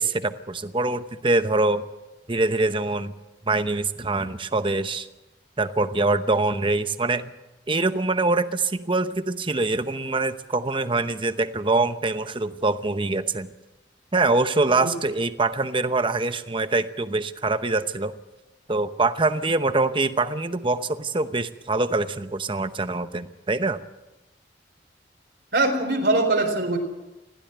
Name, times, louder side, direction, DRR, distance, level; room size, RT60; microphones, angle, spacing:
voice 1, 0.0-1.8 2.3-3.1 3.5-5.1 5.6-7.3 7.7-13.5 14.1-18.1 18.7-23.8, right 3 dB, 30° right, 11 dB, 0.9 m, -24 dB
voice 2, 25.5-26.8, right 2 dB, 70° right, 4 dB, 4.1 m, -22 dB
21.0 x 16.0 x 7.9 m, 1.0 s
head